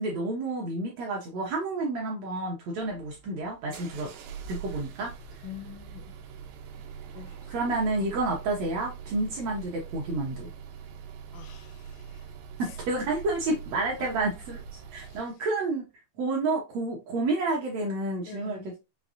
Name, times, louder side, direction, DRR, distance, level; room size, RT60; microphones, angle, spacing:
voice 1, 0.0-4.1 4.5-5.1 7.5-10.5 12.6-14.6 14.9-15.9 16.2-18.6, right 2 dB, 70° right, 1.7 m, -30 dB
sound 1, 2.8-15.3, right 7 dB, 85° right, 2.4 m, -43 dB
voice 2, 5.4-6.2 7.1-7.5 11.3-12.3 12.6-12.8 14.0-14.2 15.0-15.2 18.3-18.7, left 9 dB, 80° left, 2.2 m, -46 dB
6.0 x 2.6 x 2.5 m
omnidirectional pair, 3.9 m